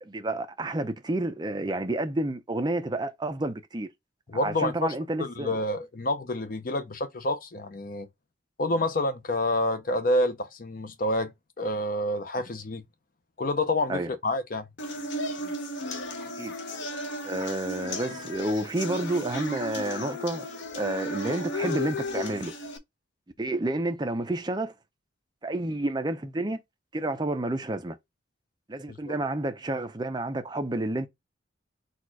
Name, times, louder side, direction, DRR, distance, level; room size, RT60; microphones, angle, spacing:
voice 1, 0.0-3.9 4.3-5.6 13.9-14.1 15.4-15.6 16.4-16.5 17.2-20.5 20.8-22.5 23.4-24.7 25.4-26.6 26.9-28.0 28.7-31.1, right 2 dB, 20° right, 0.5 m, -30 dB
voice 2, 4.3-4.9 5.2-8.1 8.6-12.9 13.4-14.7 28.9-29.1, left 1 dB, 45° left, 0.6 m, -28 dB
sound 1, 14.8-22.8, left 1 dB, 70° left, 0.9 m, -34 dB
4.3 x 2.4 x 4.5 m
head